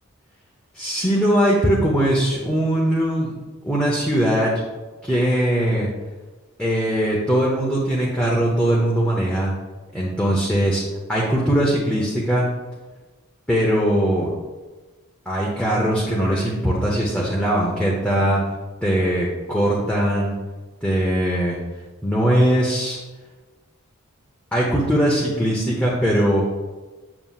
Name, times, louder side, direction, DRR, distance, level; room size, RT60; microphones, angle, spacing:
voice 1, 0.7-3.3 3.6-4.5 5.0-5.9 6.6-9.5 9.9-10.8 11.1-12.5 13.5-14.3 15.3-18.4 18.8-20.3 20.8-21.6 22.0-23.0 24.5-26.4, equal, 5° left, -5 dB, 0.8 m, -20 dB
7.5 x 6.8 x 2.4 m, 1.2 s
head